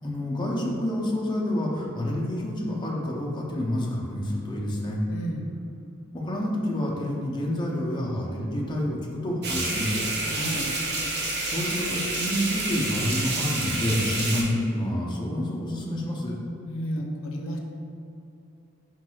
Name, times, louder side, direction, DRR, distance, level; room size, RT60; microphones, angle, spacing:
voice 1, 0.0-5.0 6.1-10.0 11.4-16.3, left 1 dB, 20° left, -2 dB, 0.6 m, -28 dB
voice 2, 5.1-5.5 10.2-10.7 16.6-17.6, equal, 85° left, 2 dB, 0.5 m, -32 dB
sound 1, 9.4-14.4, right 2 dB, 55° right, 0.7 m, -29 dB
4.5 x 4.0 x 2.3 m, 2.7 s
head